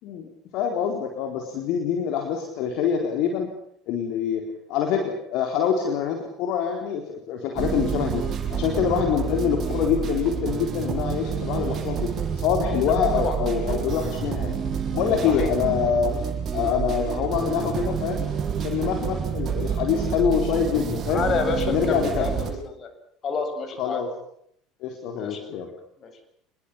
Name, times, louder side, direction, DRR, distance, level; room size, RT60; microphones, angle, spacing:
voice 1, 0.0-3.5 3.9-4.4 4.7-14.5 14.9-16.2 16.5-18.3 18.6-21.2 21.7-22.3 23.8-24.1 24.8-25.7, left 7 dB, 55° left, 3 dB, 4.1 m, -25 dB
sound 1, 7.5-22.5, right 7 dB, 35° right, 7.6 m, -28 dB
voice 2, 21.1-22.9 23.2-24.0 25.2-25.5 26.0-26.2, left 5 dB, 35° left, 7 dB, 7.7 m, -29 dB
27.5 x 21.5 x 7.5 m, 0.70 s
figure-of-eight pair, 65°, 0 cm